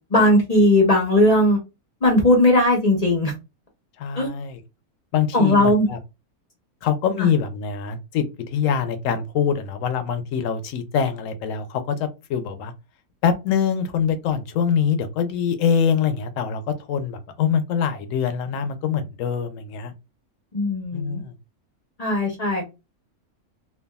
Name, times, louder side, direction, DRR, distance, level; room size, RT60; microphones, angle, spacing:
voice 1, 0.1-1.6 2.0-3.3 4.1-4.3 5.3-5.9 7.2-7.3 20.5-21.2 22.0-22.6, left 1 dB, 40° left, 0.5 m, -18 dB
voice 2, 4.0-4.6 5.1-6.0 6.8-12.7 13.2-19.9 20.9-21.3, left 7 dB, 70° left, 0.9 m, -24 dB
3.3 x 2.2 x 2.3 m
omnidirectional pair, 1.5 m